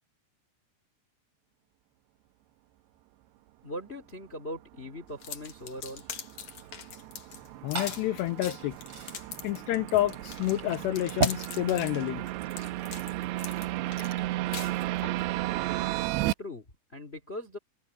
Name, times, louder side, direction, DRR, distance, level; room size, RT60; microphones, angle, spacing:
voice 1, 3.6-6.1 16.4-17.6, left 1 dB, 20° left, 2.0 m, -40 dB
sound 1, 4.9-16.3, right 17 dB, 85° right, 2.5 m, -34 dB
sound 2, 5.2-15.2, left 8 dB, 55° left, 2.3 m, -42 dB
Liquid, 7.2-14.3, right 3 dB, 30° right, 8.5 m, -38 dB
voice 2, 7.6-8.8 9.4-12.2, left 15 dB, 85° left, 2.5 m, -29 dB
omnidirectional pair, 5.6 m